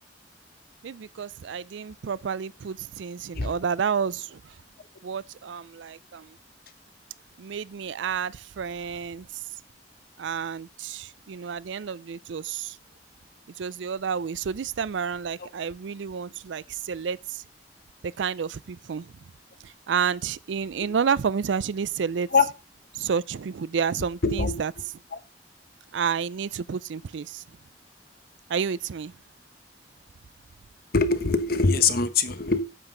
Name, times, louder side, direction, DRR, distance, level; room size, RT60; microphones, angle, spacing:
voice 1, 0.8-4.6 5.0-6.4 7.4-9.4 10.2-12.8 13.6-17.4 18.0-19.1 19.6-22.3 22.9-24.7 25.9-27.4 28.5-29.1, right 6 dB, 90° right, 0.4 m, -30 dB
voice 2, 24.2-24.5 30.9-32.6, left 4 dB, 55° left, 1.0 m, -22 dB
9.1 x 7.6 x 3.8 m
head